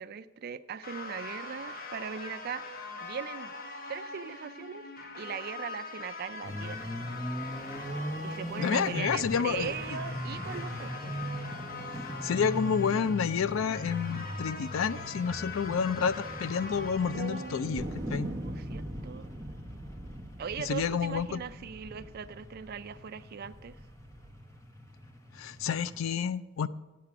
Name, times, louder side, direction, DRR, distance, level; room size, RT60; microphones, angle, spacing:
voice 1, 0.0-2.6 3.0-3.5 3.9-4.9 5.2-6.9 8.2-11.2 17.1-19.3 20.4-23.8, right 7 dB, 50° right, 13 dB, 0.4 m, -40 dB
sound 1, 0.8-17.6, left 3 dB, 45° left, 1.0 m, -42 dB
sound 2, 6.4-26.0, equal, 15° left, 0.9 m, -41 dB
voice 2, 8.6-9.7 11.9-18.3 20.7-21.4 25.3-26.7, left 6 dB, 70° left, 15 dB, 0.4 m, -30 dB
sound 3, 17.8-23.0 23.5-24.3, equal, 15° right, 0.9 m, -41 dB
8.4 x 7.5 x 5.9 m, 1.1 s
head